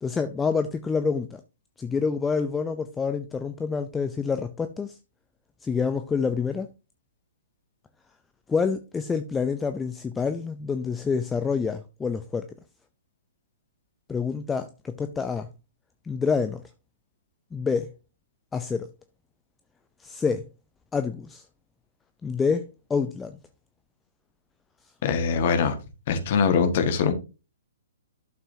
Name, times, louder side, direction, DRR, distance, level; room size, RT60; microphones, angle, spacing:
voice 1, 0.0-1.4 1.8-5.0 5.6-6.7 8.5-12.5 14.1-15.5 16.0-16.6 17.5-17.9 18.5-18.9 20.0-20.5 20.9-21.4 22.2-23.4, left 5 dB, 10° left, 0.6 m, -27 dB
voice 2, 25.0-25.7 26.1-27.1, left 6 dB, 45° left, 1.6 m, -22 dB
12.0 x 6.7 x 2.8 m
figure-of-eight pair, 115°, 0 cm